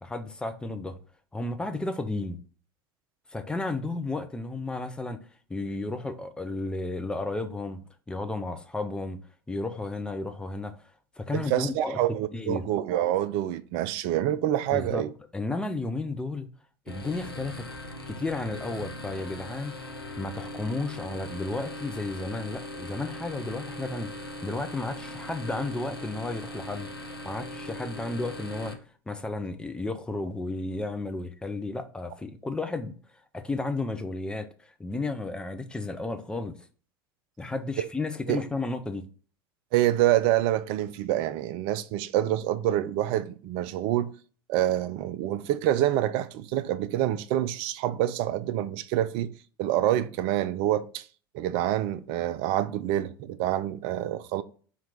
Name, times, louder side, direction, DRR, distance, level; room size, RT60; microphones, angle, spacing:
voice 1, 0.0-1.0 1.3-2.4 3.3-5.2 5.5-7.8 8.1-9.2 9.5-10.8 11.2-12.0 12.3-12.7 14.7-15.1 15.3-16.5 16.9-17.7 18.1-28.7 29.1-32.9 33.3-36.6 37.4-39.0, left 2 dB, 5° left, 0.5 m, -33 dB
voice 2, 11.3-15.1 37.8-37.9 38.3-38.4 39.7-44.1 44.5-49.3 49.6-51.0 51.3-54.4, right 13 dB, 45° right, 0.4 m, -27 dB
sound 1, 16.9-28.7, left 1 dB, 90° left, 0.7 m, -40 dB
4.4 x 2.9 x 3.8 m
figure-of-eight pair, 80°, 12 cm